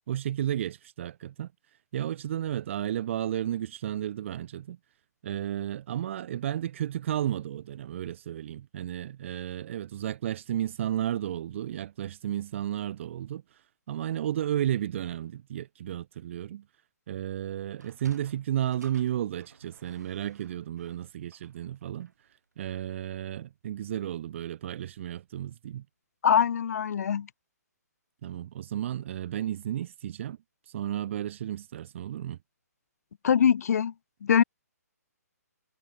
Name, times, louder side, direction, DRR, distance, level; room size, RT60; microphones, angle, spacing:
voice 1, 0.1-1.5 1.9-4.8 5.2-13.6 13.9-16.6 17.1-22.1 22.6-25.8 28.2-30.4 30.7-32.4, right 11 dB, 45° right, 1.1 m, -33 dB
Sliding door, 17.7-22.3, right 5 dB, 80° right, 2.9 m, -54 dB
voice 2, 26.2-27.3 33.2-33.9 34.2-34.4, left 8 dB, 70° left, 0.4 m, -23 dB
hypercardioid pair, 145°, 9 cm